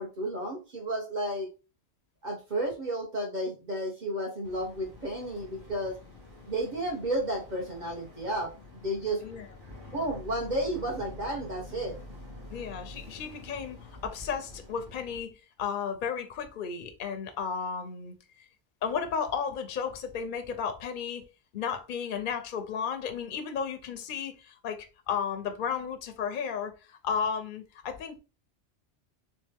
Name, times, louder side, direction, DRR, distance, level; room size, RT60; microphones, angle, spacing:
voice 1, 0.0-1.5 2.2-6.0 6.5-9.2 9.9-12.0, right 1 dB, 45° right, 1.1 m, -32 dB
Boat Water vehicle, 4.4-15.2, left 1 dB, 25° right, 1.3 m, -47 dB
voice 2, 12.5-18.4 18.8-21.2 21.5-28.2, left 6 dB, 55° left, 0.6 m, -34 dB
3.3 x 3.2 x 3.4 m
omnidirectional pair, 1.1 m